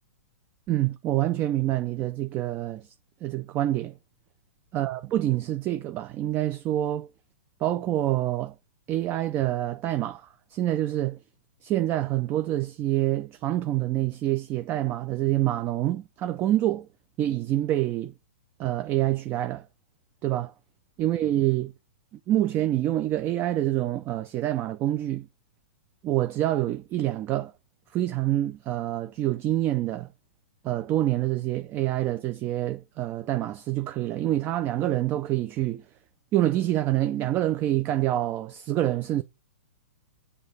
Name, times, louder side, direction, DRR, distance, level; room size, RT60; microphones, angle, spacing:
voice 1, 0.7-2.9 3.2-3.9 4.7-7.1 7.6-8.5 8.9-11.2 11.6-16.9 17.2-18.1 18.6-19.6 20.2-20.5 21.0-21.7 22.3-25.3 26.0-27.5 27.9-30.1 30.6-35.8 36.3-39.2, right 14 dB, 30° right, 0.5 m, -26 dB
6.9 x 3.3 x 5.4 m
hypercardioid pair, 125°, 7 cm